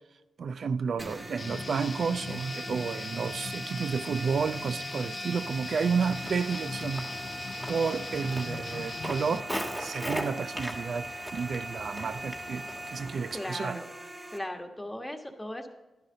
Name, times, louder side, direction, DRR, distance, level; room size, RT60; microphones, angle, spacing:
voice 1, 0.4-7.1 7.7-9.5 9.8-13.8, right 5 dB, 65° right, 0.4 m, -31 dB
sound 1, 1.0-14.4, right 1 dB, 30° right, 2.4 m, -41 dB
Guitar, 1.4-9.4, left 4 dB, 45° left, 0.4 m, -40 dB
Walk footsteps, 6.0-13.4, equal, 10° right, 1.7 m, -40 dB
voice 2, 13.3-13.9 14.3-15.7, left 1 dB, 10° left, 1.4 m, -37 dB
11.5 x 10.5 x 3.9 m
cardioid pair, 70°, 0 cm